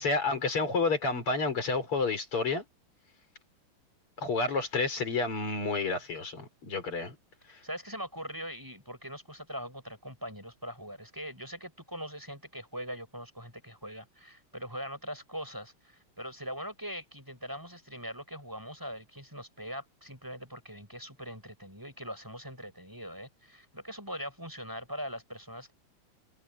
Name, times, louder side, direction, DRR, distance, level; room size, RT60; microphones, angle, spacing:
voice 1, 0.0-2.6 4.2-7.2 7.5-7.6, left 3 dB, 90° left, 5.6 m, -30 dB
voice 2, 7.5-25.7, equal, 10° right, 6.7 m, -41 dB
omnidirectional pair, 2.4 m